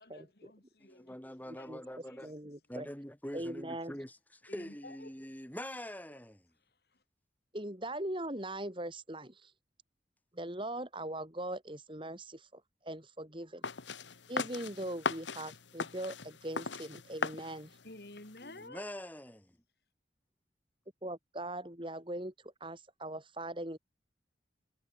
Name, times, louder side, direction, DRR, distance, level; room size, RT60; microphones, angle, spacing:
voice 1, 0.0-1.2 1.6-2.3 4.5-5.1 6.7-7.0 17.8-18.8, left 2 dB, 60° left, 2.9 m, -52 dB
voice 2, 0.8-2.3 2.7-6.5 18.4-19.6, equal, 10° left, 4.0 m, -44 dB
voice 3, 2.2-2.9 3.3-3.9 7.5-9.5 10.3-13.7 14.3-16.2 16.4-17.7 21.0-23.8, right 1 dB, 30° right, 4.2 m, -40 dB
sound 1, 13.6-18.7, left 4 dB, 90° left, 1.7 m, -39 dB
head